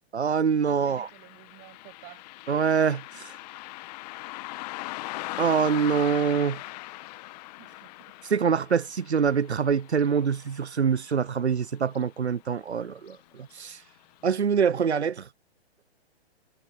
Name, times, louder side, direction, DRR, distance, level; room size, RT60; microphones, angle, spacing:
voice 1, 0.1-1.1 2.5-3.3 5.4-6.6 8.3-13.2 13.5-13.8 14.2-15.3, right 6 dB, 90° right, 0.8 m, -25 dB
voice 2, 0.7-2.3 7.6-8.2, right 28 dB, 35° right, 7.5 m, -51 dB
Car passing by, 0.8-11.6 11.9-12.0 13.0-13.2 13.6-13.7 14.2-14.3, left 21 dB, 40° left, 1.7 m, -40 dB
hypercardioid pair, 125°, 32 cm